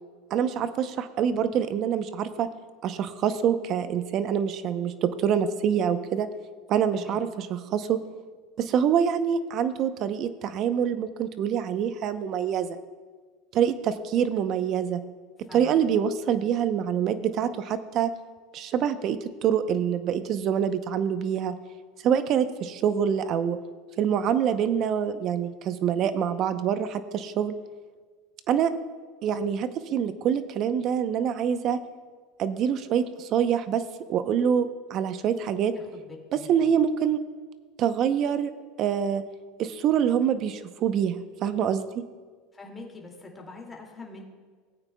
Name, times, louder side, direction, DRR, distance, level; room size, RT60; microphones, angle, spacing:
voice 1, 0.3-2.5 2.8-6.3 6.7-8.0 8.6-12.8 13.5-15.0 15.5-18.1 18.5-21.6 22.0-23.6 24.0-27.5 28.5-28.7 29.2-31.8 32.4-33.8 34.1-35.7 36.3-37.2 37.8-38.5 38.8-39.2 39.6-42.0, right 8 dB, 45° right, 11 dB, 0.7 m, -25 dB
voice 2, 15.5-15.8 35.7-36.7 42.5-44.2, left 3 dB, 15° left, -1 dB, 2.4 m, -44 dB
17.5 x 8.9 x 2.3 m, 1.5 s
supercardioid pair, 115°, 0 cm